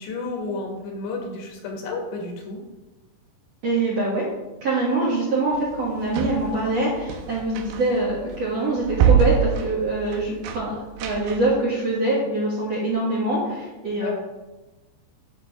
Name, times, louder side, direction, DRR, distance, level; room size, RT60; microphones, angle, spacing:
voice 1, 0.0-2.6 14.0-14.1, left 3 dB, 75° left, 0 dB, 3.9 m, -31 dB
voice 2, 3.6-4.2 4.6-10.7 11.0-14.1, right 2 dB, 50° right, -6 dB, 2.0 m, -24 dB
sound 1, 5.5-11.6, right 8 dB, 80° right, 2.7 m, -25 dB
11.0 x 6.7 x 3.6 m, 1.1 s
omnidirectional pair, 5.2 m